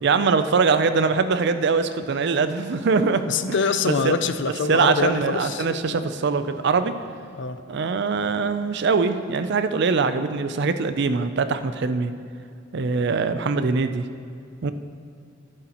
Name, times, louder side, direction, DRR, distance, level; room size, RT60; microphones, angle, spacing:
voice 1, 0.0-3.2 3.8-4.2 4.7-6.9 7.7-12.1 12.7-14.0 14.6-14.7, right 4 dB, 60° right, 10 dB, 0.5 m, -22 dB
sound 1, 1.3-3.6 5.4-7.2 8.8-9.4, left 1 dB, 35° right, 2.4 m, -47 dB
voice 2, 3.3-5.7 7.4-7.6, left 5 dB, 65° left, 11 dB, 0.5 m, -24 dB
11.5 x 11.0 x 3.0 m, 2.4 s
head